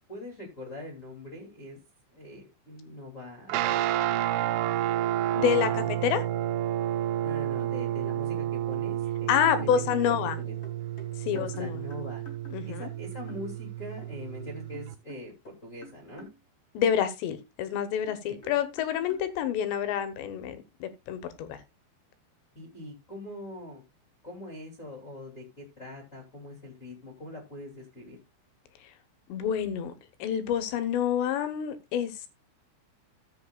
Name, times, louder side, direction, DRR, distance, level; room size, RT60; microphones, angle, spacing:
voice 1, 0.1-1.8 2.1-3.7 5.4-6.1 7.2-9.3 9.6-9.9 10.4-10.5 11.2-12.2 12.6-16.3 18.3-18.4 22.5-23.8 24.2-28.2, left 1 dB, 25° left, 2.0 m, -42 dB
Guitar, 3.5-14.9, right 12 dB, 85° right, 3.2 m, -30 dB
voice 2, 5.3-6.2 9.3-10.4 11.2-11.8 12.5-12.9 16.7-21.6 28.8-28.9 29.3-29.9 30.2-32.3, left 9 dB, 75° left, 2.9 m, -28 dB
sound 1, 9.7-12.9 13.3-13.5 14.0-14.1 14.7-16.4 17.0-17.1 18.1-19.3, right 1 dB, 45° left, 0.8 m, -49 dB
16.0 x 8.2 x 2.3 m
omnidirectional pair, 5.7 m